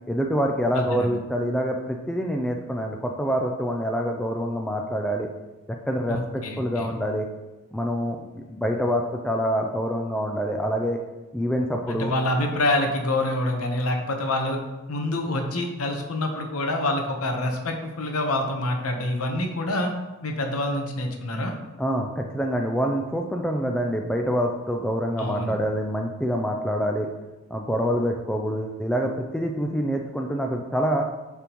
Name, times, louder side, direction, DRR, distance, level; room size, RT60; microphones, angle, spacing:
voice 1, 0.1-5.3 5.9-7.3 7.7-11.0 11.3-12.1 21.8-27.1 27.5-31.0, equal, 5° left, 1 dB, 0.3 m, -26 dB
voice 2, 0.7-1.1 6.1-6.9 11.9-14.6 14.9-19.9 20.2-21.5 25.2-25.6, left 1 dB, 85° left, 3 dB, 0.9 m, -26 dB
10.5 x 3.5 x 3.0 m, 1.1 s
head